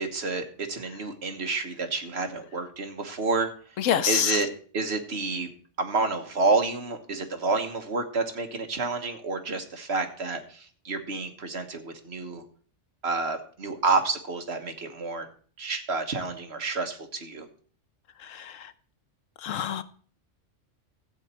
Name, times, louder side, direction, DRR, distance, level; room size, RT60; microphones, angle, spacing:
voice 1, 0.0-3.5 4.1-4.5 4.7-5.5 5.8-12.4 13.0-15.3 15.6-17.4, right 3 dB, 55° right, 1.6 m, -29 dB
voice 2, 3.8-4.4 18.2-18.7 19.4-19.8, left 9 dB, 85° left, 1.1 m, -26 dB
14.0 x 8.1 x 4.3 m
omnidirectional pair, 1.3 m